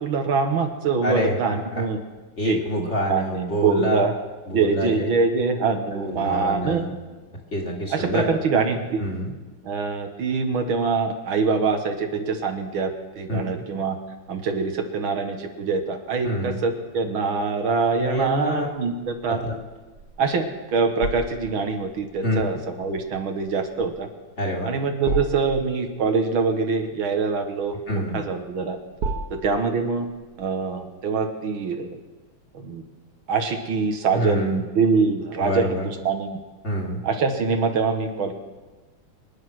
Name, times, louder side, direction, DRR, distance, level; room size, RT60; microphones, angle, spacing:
voice 1, 0.0-2.0 2.4-4.1 4.5-6.8 7.9-9.0 9.6-12.9 13.2-14.0 14.3-19.5 20.2-24.1 24.6-28.8 29.3-30.1 30.4-32.0 32.5-32.8 33.3-36.4 37.0-38.3, right 4 dB, 70° right, 5 dB, 2.1 m, -24 dB
voice 2, 1.0-1.8 2.4-4.1 4.5-5.1 5.9-6.9 7.5-8.3 9.0-9.3 13.3-13.5 16.2-16.6 18.0-18.7 19.3-19.5 22.2-22.6 24.4-24.7 27.9-28.2 34.1-34.6 35.4-35.9 36.6-37.0, equal, 35° left, 0 dB, 2.5 m, -27 dB
sound 1, 19.1-30.5, right 3 dB, 55° right, 1.4 m, -36 dB
24.0 x 9.9 x 6.2 m, 1.3 s
omnidirectional pair, 2.3 m